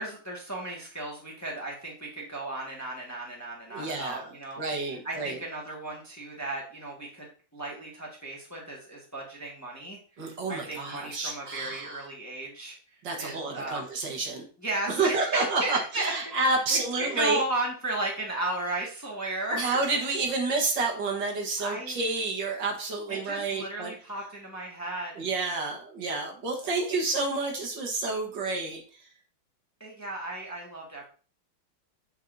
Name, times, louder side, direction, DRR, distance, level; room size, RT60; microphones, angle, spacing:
voice 1, 0.0-4.6 5.0-13.8 14.6-16.1 16.4-19.6 21.6-22.0 23.1-25.2 29.8-31.0, right 2 dB, 10° left, -2 dB, 1.4 m, -35 dB
voice 2, 3.7-5.4 10.2-12.1 13.0-14.5 14.9-17.4 19.5-23.9 25.2-29.1, right 3 dB, 65° right, 1 dB, 1.9 m, -29 dB
7.0 x 6.2 x 2.6 m, 0.38 s
omnidirectional pair, 2.2 m